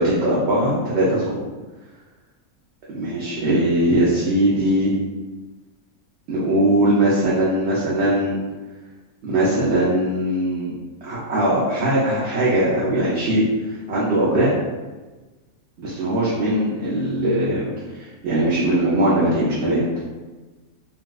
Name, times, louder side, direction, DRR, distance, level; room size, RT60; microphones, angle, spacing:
voice 1, 0.0-1.4 2.9-4.9 6.3-8.4 9.2-10.7 11.0-14.5 15.8-17.7 18.0-19.8, right 1 dB, 60° right, -8 dB, 0.9 m, -20 dB
3.9 x 2.3 x 2.3 m, 1.2 s
omnidirectional pair, 1.5 m